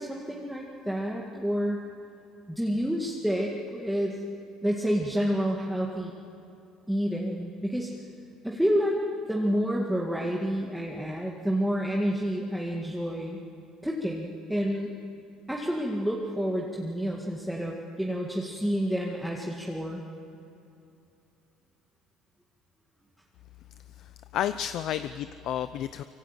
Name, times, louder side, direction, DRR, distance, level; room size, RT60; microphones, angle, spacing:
voice 1, 0.0-1.8 2.5-4.2 4.6-6.1 6.9-7.9 8.4-9.0 9.3-13.4 13.8-14.9 15.5-20.0, equal, ahead, -2 dB, 2.1 m, -29 dB
voice 2, 24.0-26.0, left 11 dB, 55° left, 12 dB, 0.7 m, -31 dB
24.5 x 24.0 x 9.0 m, 2.7 s
cardioid pair, 145°, 0 cm